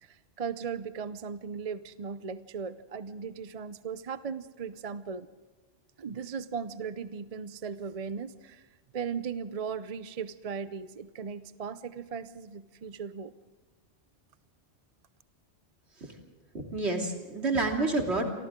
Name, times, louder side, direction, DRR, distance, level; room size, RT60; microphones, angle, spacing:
voice 1, 0.0-5.3 6.0-8.7 8.9-13.3, right 6 dB, 40° right, 13 dB, 0.6 m, -37 dB
voice 2, 16.5-18.3, right 2 dB, 70° right, 2 dB, 3.3 m, -29 dB
29.5 x 24.0 x 3.7 m, 1.3 s
omnidirectional pair, 1.2 m